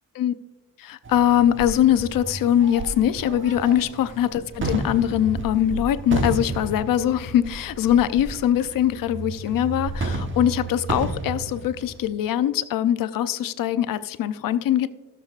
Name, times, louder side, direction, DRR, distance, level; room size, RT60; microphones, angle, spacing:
voice 1, 0.8-14.9, left 11 dB, 85° left, 13 dB, 0.6 m, -22 dB
sound 1, 1.0-12.1, right 2 dB, 35° right, 1.2 m, -32 dB
16.5 x 6.9 x 2.4 m, 1.2 s
cardioid pair, 95°, 33 cm